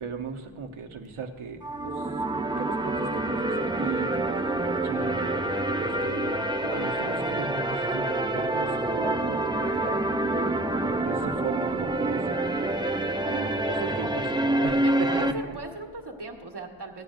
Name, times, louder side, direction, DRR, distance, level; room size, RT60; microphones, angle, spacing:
voice 1, 0.0-2.1 2.6-5.3 5.8-6.3 6.6-10.0 10.8-15.5, right 5 dB, 85° right, 2 dB, 1.1 m, -37 dB
sound 1, 1.6-15.3, right 1 dB, 10° right, 0.4 m, -27 dB
voice 2, 10.3-10.7 14.8-17.0, right 2 dB, 55° right, 2 dB, 1.5 m, -38 dB
16.0 x 10.0 x 2.5 m, 1.6 s
wide cardioid pair, 75°, 49 cm